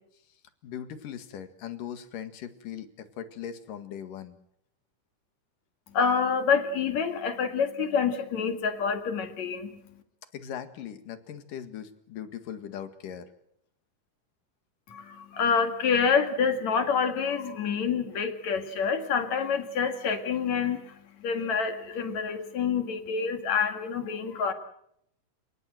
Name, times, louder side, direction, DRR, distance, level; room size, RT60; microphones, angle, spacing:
voice 1, 0.6-4.4 10.3-13.3, left 9 dB, 75° left, 9 dB, 3.4 m, -39 dB
voice 2, 5.9-9.7 14.9-24.5, left 6 dB, 60° left, 7 dB, 3.0 m, -27 dB
30.0 x 18.0 x 7.9 m, 0.75 s
omnidirectional pair, 3.8 m